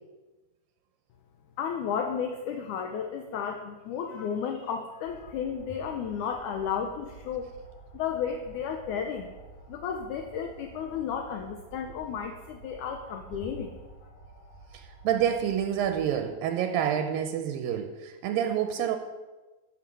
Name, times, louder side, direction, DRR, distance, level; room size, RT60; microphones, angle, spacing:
voice 1, 1.6-7.5 7.9-9.3 9.7-13.8, left 7 dB, 75° left, 4 dB, 1.9 m, -33 dB
sound 1, 5.0-16.3, right 3 dB, 35° left, 2.5 m, -49 dB
voice 2, 14.7-19.0, right 9 dB, 80° right, 7 dB, 2.4 m, -28 dB
13.5 x 6.5 x 6.2 m, 1.2 s
omnidirectional pair, 4.3 m